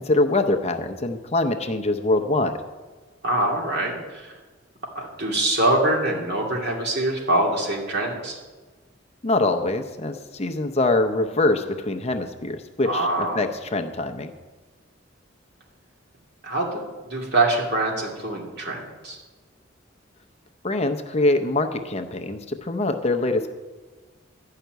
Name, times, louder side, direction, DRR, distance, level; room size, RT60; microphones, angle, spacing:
voice 1, 0.0-2.6 9.2-14.3 20.6-23.5, left 2 dB, 35° left, 7 dB, 0.7 m, -24 dB
voice 2, 3.2-4.3 4.9-8.4 12.8-13.4 16.4-19.2, right 1 dB, 60° right, -1 dB, 2.7 m, -24 dB
12.0 x 5.8 x 9.2 m, 1.3 s
head